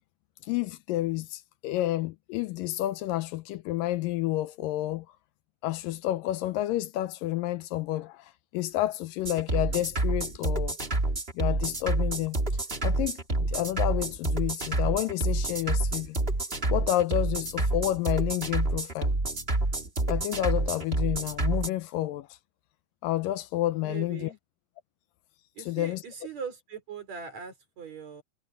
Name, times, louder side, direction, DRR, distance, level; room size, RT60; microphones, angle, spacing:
voice 1, 0.4-5.1 5.6-10.8 11.3-12.4 12.8-16.2 16.7-19.1 20.1-22.3 23.0-24.3 25.6-26.0, left 15 dB, 80° left, 2.1 m, -30 dB
sound 1, 9.2-21.7, right 2 dB, 20° right, 2.0 m, -28 dB
voice 2, 23.8-24.4 25.6-28.2, right 6 dB, 45° right, 5.5 m, -40 dB
omnidirectional pair, 4.3 m